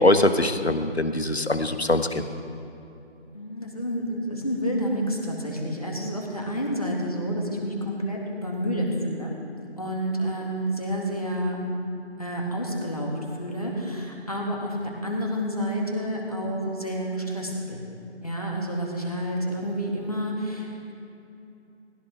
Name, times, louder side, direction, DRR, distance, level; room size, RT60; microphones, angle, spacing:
voice 1, 0.0-2.3, left 1 dB, 65° left, 8 dB, 1.3 m, -22 dB
voice 2, 3.3-9.3 9.8-11.6 12.2-17.8 18.2-20.9, equal, 30° left, -2 dB, 2.4 m, -29 dB
21.0 x 16.0 x 3.6 m, 2.8 s
figure-of-eight pair, 175°, 35 cm